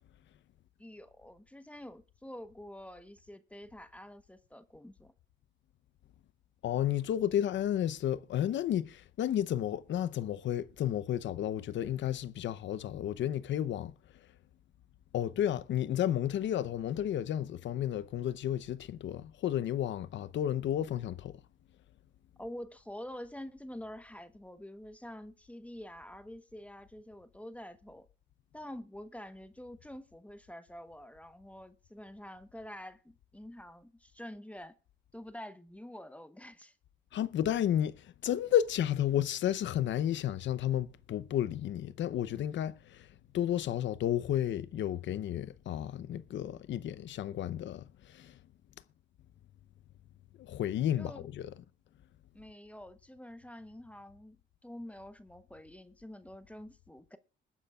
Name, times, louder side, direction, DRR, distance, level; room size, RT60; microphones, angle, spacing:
voice 1, 0.8-5.1 22.4-28.1 28.5-34.7 35.1-36.7 51.0-51.2 52.3-57.2, left 1 dB, 5° left, 1.0 m, -47 dB
voice 2, 6.6-13.9 15.1-21.4 37.1-43.1 43.3-47.8 48.1-48.3 50.4-51.5, left 11 dB, 70° left, 0.7 m, -32 dB
21.5 x 9.7 x 2.4 m
cardioid pair, 90°, 20 cm